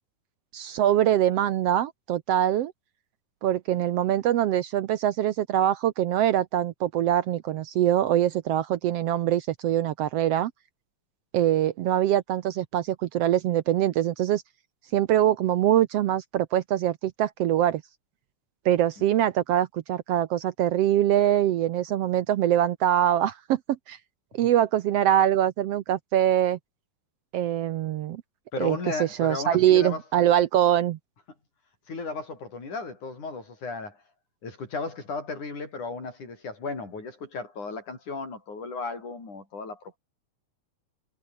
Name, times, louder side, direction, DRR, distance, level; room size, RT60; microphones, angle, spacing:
voice 1, 0.5-2.7 3.4-10.5 11.3-14.4 14.9-17.8 18.6-23.6 23.9-24.0 24.3-26.6 27.3-28.2 28.6-31.0, right 11 dB, 70° right, 1.5 m, -23 dB
voice 2, 28.5-30.0 31.9-34.0 34.4-40.0, left 4 dB, 70° left, 8.3 m, -35 dB
omnidirectional pair, 3.6 m